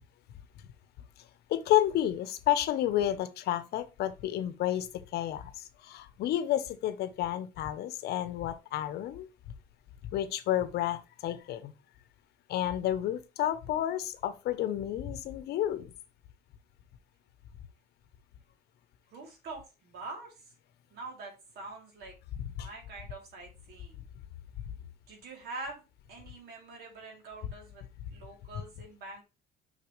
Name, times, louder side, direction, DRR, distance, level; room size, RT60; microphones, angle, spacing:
voice 1, 1.5-9.3 10.1-11.7 12.5-15.9 22.3-22.7, left 12 dB, 70° left, 0.9 m, -31 dB
voice 2, 19.1-20.3 20.9-22.2 22.6-24.0 25.1-25.8 26.1-27.8 28.1-29.2, right 3 dB, 70° right, 3.1 m, -44 dB
6.7 x 5.7 x 3.2 m
cardioid pair, 110°, 17 cm